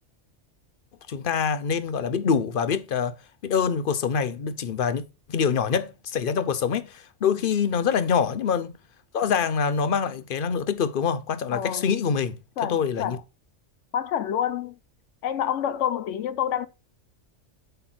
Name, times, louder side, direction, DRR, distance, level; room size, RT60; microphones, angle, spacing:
voice 1, 1.1-3.2 3.4-8.7 9.1-12.4 12.7-13.2, left 6 dB, 55° left, 0.8 m, -25 dB
voice 2, 11.5-11.9 12.6-13.2 13.9-14.8 15.2-16.7, left 10 dB, 90° left, 1.0 m, -28 dB
8.0 x 3.3 x 5.9 m
omnidirectional pair, 1.2 m